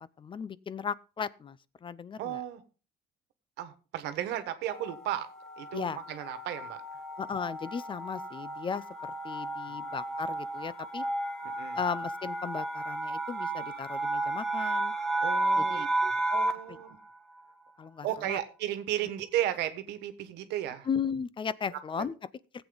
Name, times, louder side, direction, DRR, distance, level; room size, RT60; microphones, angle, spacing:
voice 1, 0.0-2.4 5.7-6.0 7.2-11.1 11.7-14.9 15.6-16.1 17.8-18.4 20.9-22.1, left 6 dB, 30° left, 0.5 m, -36 dB
voice 2, 2.2-2.6 3.6-5.3 5.6-6.8 9.7-9.9 11.6-11.8 15.2-15.9 16.3-17.0 18.0-20.9 21.7-21.8, right 12 dB, 90° right, 1.4 m, -34 dB
sound 1, 4.7-16.8, right 2 dB, 5° left, 1.6 m, -33 dB
15.0 x 8.1 x 3.9 m
cardioid pair, 110°, 17 cm